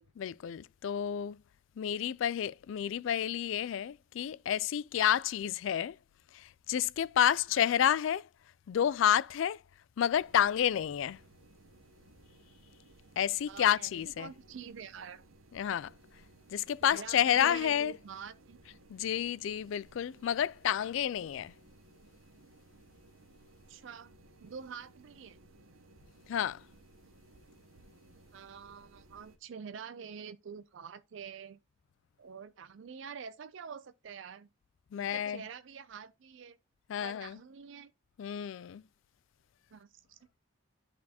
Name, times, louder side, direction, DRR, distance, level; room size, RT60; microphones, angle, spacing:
voice 1, 0.2-1.4 1.8-5.9 6.3-8.3 8.7-9.6 10.0-11.2 13.2-14.3 15.5-15.9 16.5-17.9 18.9-21.5 26.3-26.6 34.9-35.4 36.9-37.4 38.2-38.8, left 9 dB, 70° left, 0.3 m, -30 dB
sound 1, 10.1-29.4, right 2 dB, 80° right, 0.8 m, -60 dB
voice 2, 13.5-13.9 14.2-15.2 16.8-18.6 23.7-24.1 24.4-25.4 28.3-31.6 32.2-34.5 35.0-36.6 37.0-37.9 39.7-40.2, right 6 dB, 65° right, 0.4 m, -46 dB
12.0 x 4.2 x 2.8 m
head